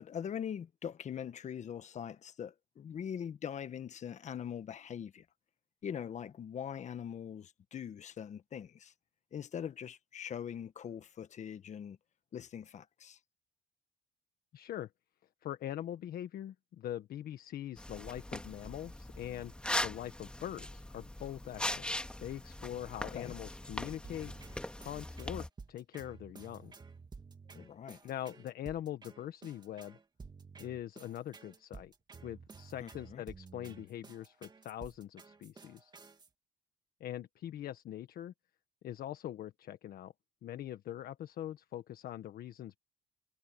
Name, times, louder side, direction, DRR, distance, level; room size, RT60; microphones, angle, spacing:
voice 1, 0.0-5.2 5.8-8.9 9.3-12.0 12.3-13.2 23.1-23.3 27.5-28.0 32.8-33.2, left 8 dB, 45° left, 1.3 m, -42 dB
voice 2, 14.5-14.9 15.4-19.5 19.8-21.9 22.2-24.3 24.8-26.7 28.0-30.0 30.6-31.9 32.2-35.9 37.0-38.3 38.8-40.1 40.4-42.8, left 12 dB, 65° left, 1.5 m, -42 dB
sound 1, 17.8-25.5, left 1 dB, 5° left, 2.1 m, -40 dB
sound 2, 24.0-36.3, right 4 dB, 25° right, 2.5 m, -53 dB
cardioid pair, 110°, 17 cm